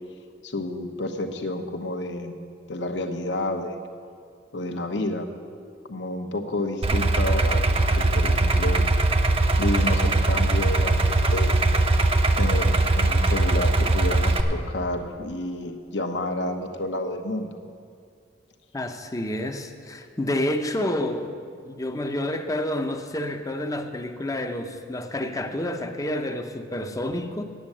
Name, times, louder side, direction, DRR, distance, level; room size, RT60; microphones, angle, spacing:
voice 1, 0.4-2.4 2.7-3.8 4.5-5.3 5.9-8.8 9.6-11.6 12.4-17.6, left 1 dB, 75° left, 5 dB, 1.0 m, -30 dB
Idling, 6.8-14.4, right 2 dB, 30° right, 0.6 m, -21 dB
voice 2, 18.7-27.4, left 1 dB, 20° left, 7 dB, 0.6 m, -29 dB
9.4 x 7.3 x 8.6 m, 2.3 s
head